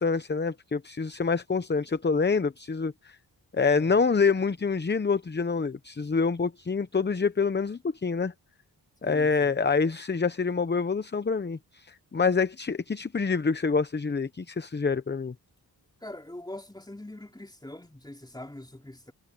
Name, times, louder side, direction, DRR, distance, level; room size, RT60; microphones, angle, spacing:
voice 1, 0.0-3.2 3.5-8.3 9.0-15.3, left 4 dB, 25° left, 0.8 m, -26 dB
voice 2, 3.7-4.1 9.0-9.5 16.0-19.1, left 1 dB, 10° left, 3.4 m, -43 dB
wide cardioid pair, 90°, 41 cm